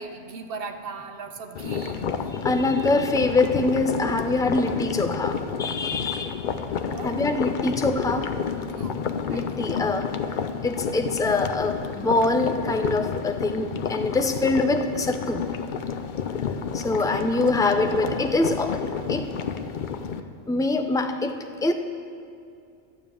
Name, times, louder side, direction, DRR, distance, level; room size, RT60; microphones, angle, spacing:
voice 1, 0.0-2.1 6.9-7.1 8.7-10.1 16.8-17.2, right 4 dB, 55° right, 6 dB, 1.0 m, -39 dB
sound 1, 1.5-20.2, left 6 dB, 55° left, 0.6 m, -30 dB
voice 2, 2.4-6.4 7.0-8.3 9.3-10.1 10.6-15.4 16.7-18.8 19.1-19.3 20.5-21.7, left 2 dB, 5° left, 6 dB, 0.4 m, -24 dB
12.0 x 7.1 x 8.9 m, 2.5 s
omnidirectional pair, 1.2 m